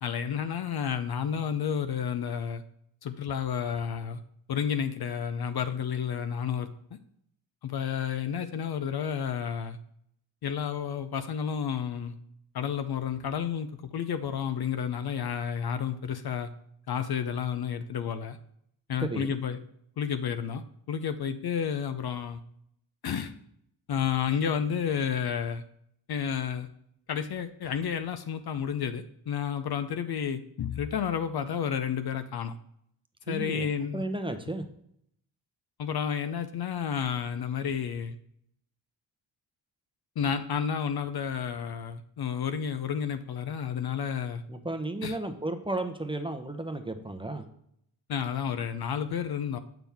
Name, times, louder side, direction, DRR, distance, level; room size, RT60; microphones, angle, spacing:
voice 1, 0.0-2.6 3.0-4.2 4.5-6.7 7.6-9.8 10.4-12.1 12.5-13.7 13.9-16.5 16.9-18.4 18.9-19.6 20.0-20.6 20.9-22.4 23.0-23.3 23.9-25.6 26.1-26.7 27.1-32.5 33.3-34.0 35.8-38.2 40.2-44.4 45.0-45.2 48.1-49.6, left 7 dB, 50° left, 10 dB, 0.7 m, -31 dB
voice 2, 19.0-19.3 33.3-33.7 33.9-34.6 44.5-47.4, right 2 dB, 10° right, 6 dB, 0.9 m, -33 dB
6.9 x 5.9 x 3.5 m, 0.71 s
supercardioid pair, 55°, 48 cm